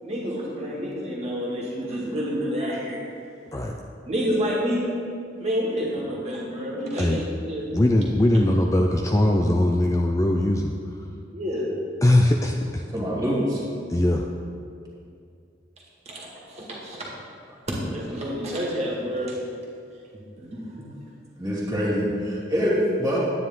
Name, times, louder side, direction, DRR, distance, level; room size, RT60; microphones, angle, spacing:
voice 1, 0.0-3.0 4.1-4.9 5.4-7.6 11.3-11.7 16.1-17.1 17.7-19.4 20.1-20.9, equal, 35° right, -4 dB, 2.0 m, -29 dB
voice 2, 7.7-10.7 12.0-12.8 13.9-14.3, left 1 dB, 15° left, 2 dB, 0.4 m, -20 dB
voice 3, 12.9-13.6 21.4-23.2, equal, 20° right, -6 dB, 2.5 m, -24 dB
10.0 x 9.4 x 3.8 m, 2.4 s
head